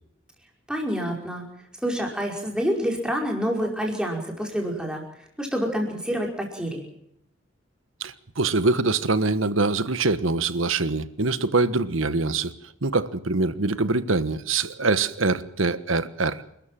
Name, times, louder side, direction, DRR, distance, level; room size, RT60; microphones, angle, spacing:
voice 1, 0.7-1.4 1.8-5.0 5.4-6.8, equal, 5° right, 0 dB, 5.2 m, -27 dB
voice 2, 8.0-12.5 12.8-16.4, right 3 dB, 80° right, 13 dB, 1.4 m, -24 dB
29.0 x 13.5 x 7.6 m, 0.78 s
head